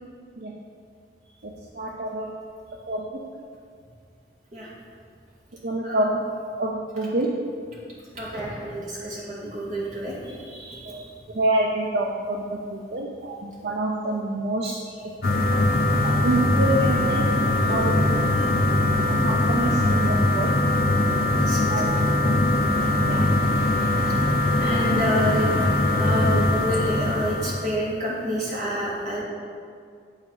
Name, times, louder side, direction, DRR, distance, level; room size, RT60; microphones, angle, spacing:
voice 1, 1.4-2.3 2.9-3.2 5.6-6.2 6.6-7.3 10.8-11.0 11.3-14.8 15.0-15.1 16.0-17.3 17.6-18.2 19.2-20.6 21.7-21.9 22.9-23.4, right 1 dB, 65° right, -1 dB, 0.6 m, -27 dB
voice 2, 8.1-11.1 21.3-22.1 24.6-25.5 26.0-29.2, equal, 45° right, -6 dB, 2.2 m, -29 dB
sound 1, 15.2-27.7, left 1 dB, 55° left, 0.8 m, -21 dB
9.0 x 5.1 x 4.9 m, 2.2 s
head